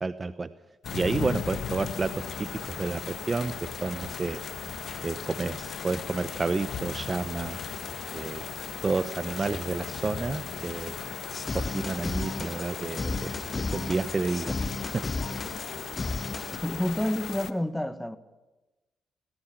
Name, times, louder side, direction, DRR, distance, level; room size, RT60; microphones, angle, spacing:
voice 1, 0.0-0.5 0.9-4.4 5.0-7.6 8.1-8.4 8.8-10.9 11.5-14.5 14.8-15.1, right 3 dB, 35° right, 0.8 m, -30 dB
sound 1, 0.8-17.5, left 7 dB, 60° left, 1.3 m, -37 dB
sound 2, 11.3-16.6, left 3 dB, 35° left, 1.5 m, -34 dB
voice 2, 16.6-18.2, left 1 dB, 5° left, 1.7 m, -29 dB
18.0 x 17.5 x 8.6 m
hypercardioid pair, 50°, 0 cm